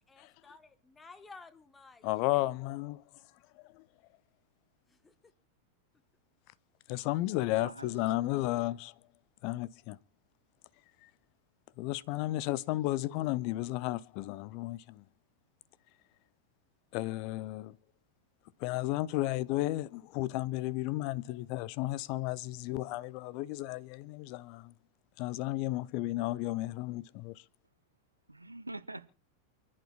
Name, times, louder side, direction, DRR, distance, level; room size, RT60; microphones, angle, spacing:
voice 1, 0.1-2.0 4.9-5.3, left 4 dB, 15° left, 1.2 m, -54 dB
voice 2, 2.0-3.0 3.7-3.8 6.9-8.9 9.4-10.0 11.8-15.0 16.9-17.8 18.6-24.7 25.2-27.3, left 17 dB, 45° left, 0.6 m, -33 dB
voice 3, 7.5-8.4 28.3-29.2, right 2 dB, 85° right, 0.6 m, -45 dB
28.5 x 11.0 x 2.4 m
figure-of-eight pair, 90°, 0 cm